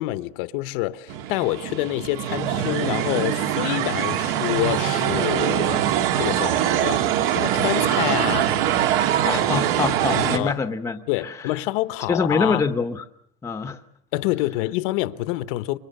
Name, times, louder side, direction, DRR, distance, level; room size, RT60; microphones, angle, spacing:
voice 1, 0.0-5.9 6.2-7.0 7.3-8.5 9.3-9.4 10.1-10.6 11.1-12.6 14.1-15.8, left 17 dB, 60° left, 1.1 m, -27 dB
sound 1, 1.1-10.4, right 10 dB, 70° right, 2.5 m, -23 dB
voice 2, 9.2-11.4 12.1-13.0 13.4-13.8, left 4 dB, 10° left, 0.9 m, -25 dB
28.5 x 24.5 x 6.7 m
cardioid pair, 175°, 30 cm